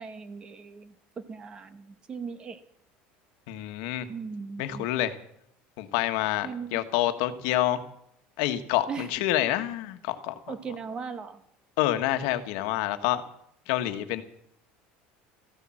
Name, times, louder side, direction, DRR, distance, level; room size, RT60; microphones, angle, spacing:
voice 1, 0.0-2.6 4.1-4.9 6.4-6.8 8.9-9.1 10.5-11.4, right 5 dB, 20° right, 12 dB, 1.0 m, -38 dB
voice 2, 3.5-4.1 4.6-5.2 5.8-7.8 8.4-10.3 11.8-13.2 13.7-14.2, left 14 dB, 75° left, 8 dB, 1.4 m, -27 dB
14.5 x 11.5 x 7.6 m, 0.70 s
cardioid pair, 165°, 4 cm